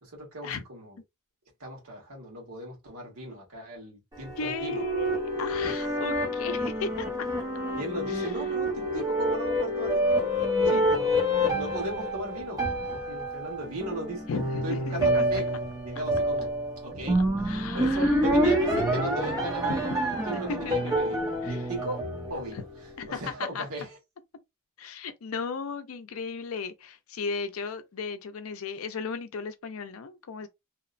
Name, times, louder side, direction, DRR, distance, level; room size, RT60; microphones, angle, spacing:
voice 1, 0.0-1.0 1.6-4.8 5.6-5.9 7.7-10.3 10.6-14.3 14.6-15.5 15.8-16.5 16.8-17.3 17.7-21.2 21.5-22.6 23.1-24.0, right 1 dB, 90° right, 1.3 m, -37 dB
sound 1, 4.1-22.7, equal, 15° right, 0.6 m, -28 dB
voice 2, 4.4-7.3 8.1-8.3 10.7-10.9 14.3-15.0 15.3-15.6 17.5-18.5 19.7-19.8 20.5-20.9 21.4-21.6 22.5-22.6 23.0-23.7 24.8-30.5, left 5 dB, 75° left, 0.5 m, -36 dB
2.8 x 2.0 x 2.5 m
head